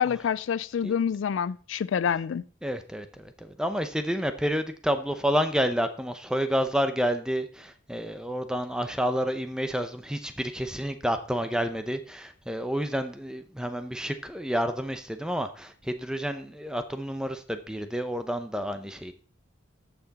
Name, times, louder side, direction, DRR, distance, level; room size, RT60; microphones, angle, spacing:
voice 1, 0.0-2.4, left 7 dB, 75° left, 0.3 m, -27 dB
voice 2, 2.6-3.3 3.6-19.1, equal, 5° right, 0.7 m, -29 dB
13.5 x 6.0 x 4.1 m
head